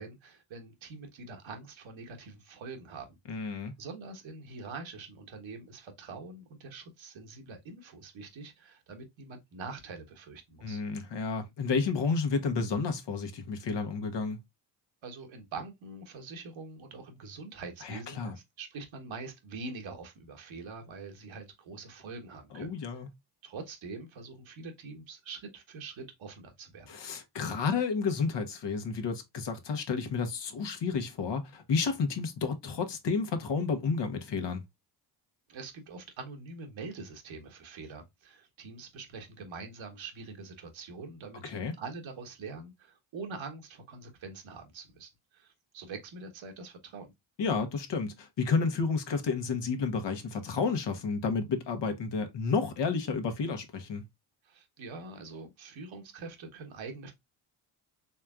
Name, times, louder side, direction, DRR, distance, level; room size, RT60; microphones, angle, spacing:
voice 1, 0.0-10.8 15.0-18.2 18.6-22.7 23.4-26.9 35.5-41.4 41.8-47.1 54.4-57.1, right 4 dB, 65° right, 1.5 m, -44 dB
voice 2, 3.3-3.7 10.6-14.4 17.8-18.3 22.5-23.1 26.9-34.6 41.4-41.7 47.4-54.0, left 5 dB, 55° left, 1.2 m, -31 dB
4.3 x 3.3 x 2.4 m
supercardioid pair, 60°, 49 cm